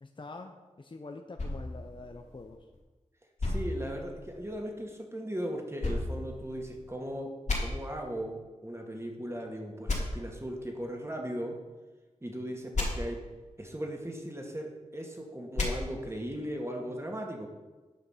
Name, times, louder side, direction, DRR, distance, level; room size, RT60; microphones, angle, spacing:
voice 1, 0.0-2.6, left 3 dB, 40° left, 5 dB, 0.7 m, -45 dB
sound 1, 1.4-2.8 3.4-4.6 5.8-7.0 7.5-7.6 9.9-10.0 12.7-12.9 15.5-15.7, left 2 dB, 70° left, 2.7 m, -34 dB
voice 2, 3.4-7.3 7.6-11.5 12.2-13.2 13.6-17.5, equal, 20° right, 1 dB, 2.0 m, -37 dB
9.5 x 5.8 x 5.7 m, 1.2 s
wide cardioid pair, 55°, 13 cm